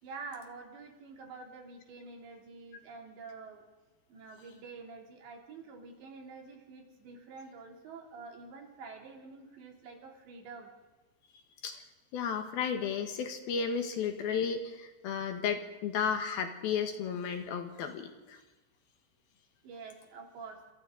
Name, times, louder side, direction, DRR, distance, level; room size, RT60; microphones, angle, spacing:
voice 1, 0.0-3.6 4.1-10.7 19.6-20.6, right 4 dB, 80° right, 0 dB, 5.2 m, -47 dB
voice 2, 12.1-18.4, left 7 dB, 70° left, 5 dB, 2.9 m, -33 dB
27.0 x 25.5 x 3.9 m, 1.2 s
omnidirectional pair, 5.0 m